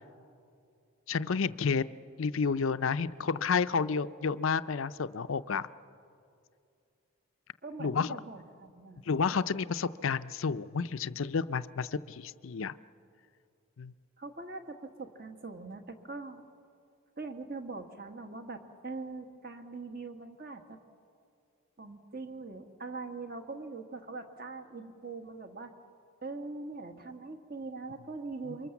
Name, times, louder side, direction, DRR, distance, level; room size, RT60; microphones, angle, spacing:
voice 1, 1.1-1.8 2.2-5.7 7.8-8.1 9.1-12.7 13.8-13.9, left 5 dB, 75° left, 13 dB, 0.5 m, -30 dB
voice 2, 7.6-9.1 9.9-10.0 14.2-16.4 17.2-20.8 21.8-25.7 26.2-28.7, right 3 dB, 45° right, 6 dB, 1.6 m, -42 dB
28.0 x 24.0 x 7.2 m, 2.4 s
head